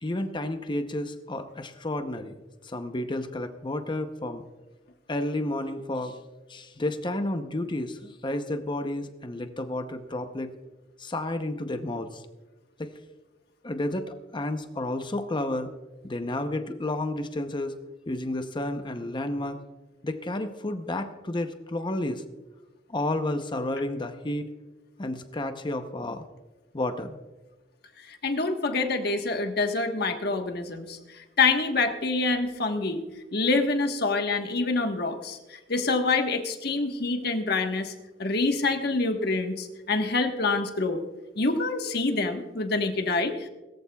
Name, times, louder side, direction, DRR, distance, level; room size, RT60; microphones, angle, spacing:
voice 1, 0.0-2.3 2.6-4.4 5.1-6.2 6.5-10.5 11.0-12.2 12.8-12.9 13.6-15.7 16.0-17.8 18.1-19.6 20.0-22.2 22.9-24.5 25.0-26.3 26.7-27.2, left 1 dB, 25° left, 8 dB, 0.7 m, -31 dB
voice 2, 28.1-33.0 33.3-37.9 38.2-41.0 41.4-43.5, left 3 dB, 60° left, 5 dB, 1.3 m, -26 dB
21.0 x 14.5 x 2.3 m, 1.2 s
head